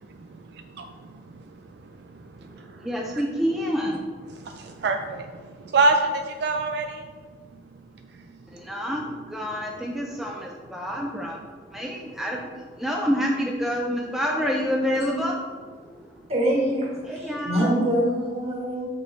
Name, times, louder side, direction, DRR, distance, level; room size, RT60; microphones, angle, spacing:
voice 1, 0.0-3.2 4.3-7.1 8.2-8.4, right 3 dB, 65° right, 5 dB, 0.4 m, -28 dB
voice 2, 2.8-4.0 8.5-11.4 11.7-16.1 17.1-17.7, equal, ahead, -1 dB, 0.5 m, -28 dB
voice 3, 16.3-18.9, equal, 35° right, -4 dB, 2.0 m, -24 dB
6.6 x 5.4 x 4.4 m, 1.5 s
head